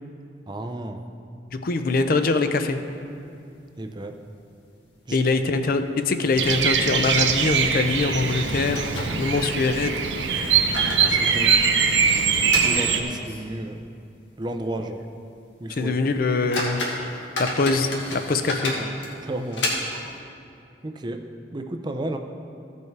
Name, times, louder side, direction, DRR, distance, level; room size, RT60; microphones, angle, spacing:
voice 1, 0.5-1.1 3.8-4.2 5.1-5.2 11.1-11.7 12.6-13.9 14.4-15.0 15.6-16.0 18.8-18.9 19.2-19.7 20.8-21.2 21.5-22.2, right 1 dB, 25° right, 6 dB, 0.5 m, -32 dB
voice 2, 1.5-2.8 5.1-8.8 9.2-9.9 15.8-16.8 17.4-18.8, left 3 dB, 50° left, 8 dB, 0.5 m, -23 dB
sound 1, 1.8-2.8 3.1-3.2 3.5-3.6 4.3-4.7 5.0-5.2 5.8-6.0 6.3-6.5 7.8-7.9 8.5-9.7 10.4-13.6 13.9-14.0 14.6-14.7 15.1-15.3 15.8-15.9 16.3-20.2, left 2 dB, 80° left, 1.7 m, -32 dB
Bird vocalization bird call bird song, 6.4-13.0, right 6 dB, 80° right, 0.7 m, -22 dB
15.0 x 5.5 x 4.6 m, 2.5 s
head